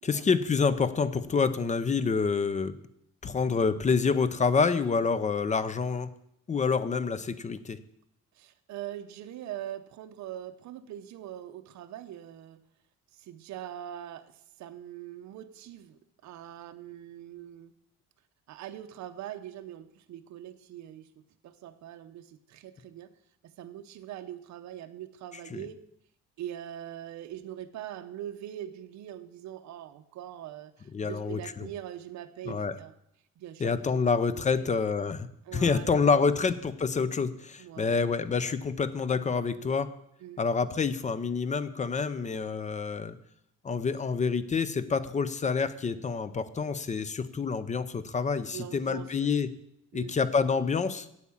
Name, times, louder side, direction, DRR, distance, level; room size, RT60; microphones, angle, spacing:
voice 1, 0.0-2.7 3.2-6.1 6.5-7.8 25.5-25.6 30.9-31.7 32.5-32.7 33.6-35.3 35.5-39.9 40.4-43.2 43.6-49.5 49.9-51.1, left 5 dB, 25° left, 14 dB, 0.6 m, -27 dB
voice 2, 8.3-12.6 13.1-17.7 18.5-21.1 21.4-23.1 23.4-25.8 26.4-32.9 33.4-33.8 34.3-34.7 35.5-36.0 37.6-38.0 39.6-39.7 40.2-40.4 48.5-49.4 49.9-50.1, right 11 dB, 65° right, 7 dB, 0.8 m, -42 dB
8.5 x 8.4 x 7.2 m, 0.76 s
cardioid pair, 140°, 31 cm